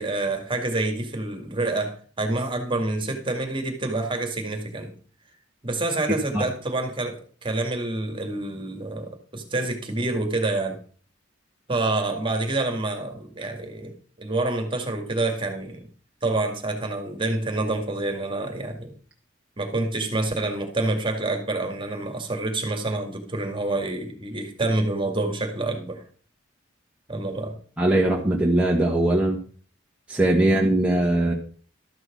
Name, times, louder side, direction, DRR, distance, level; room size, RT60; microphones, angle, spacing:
voice 1, 0.0-4.9 5.6-10.8 11.7-15.9 16.2-18.9 19.6-26.0 27.1-27.6, right 2 dB, 25° right, 4 dB, 2.1 m, -27 dB
voice 2, 27.8-29.4 30.1-31.3, right 1 dB, 5° right, -3 dB, 1.5 m, -20 dB
13.0 x 6.3 x 6.1 m, 0.42 s
head